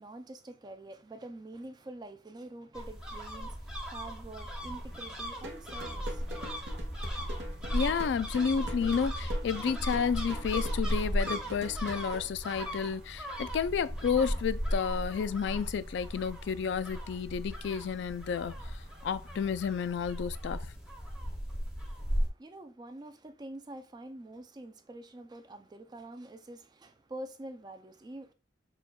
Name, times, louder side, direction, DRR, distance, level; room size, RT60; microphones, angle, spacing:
voice 1, 0.0-6.6 22.1-28.3, right 1 dB, 20° right, 0.3 m, -46 dB
sound 1, 2.7-22.3, equal, 5° right, 0.8 m, -36 dB
sound 2, 4.6-20.2, right 1 dB, 55° right, 2.1 m, -58 dB
sound 3, 5.4-12.3, right 1 dB, 75° right, 1.0 m, -44 dB
voice 2, 7.7-20.7, left 6 dB, 65° left, 0.3 m, -31 dB
6.8 x 2.3 x 2.2 m
head